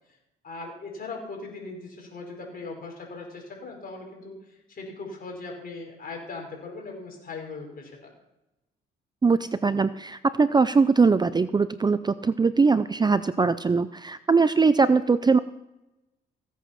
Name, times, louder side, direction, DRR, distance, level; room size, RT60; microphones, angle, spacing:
voice 1, 0.4-8.1, left 3 dB, 45° left, 1 dB, 5.0 m, -39 dB
voice 2, 9.2-15.4, right 4 dB, 20° right, 13 dB, 0.5 m, -21 dB
16.5 x 8.4 x 5.8 m, 0.94 s
cardioid pair, 90°, 20 cm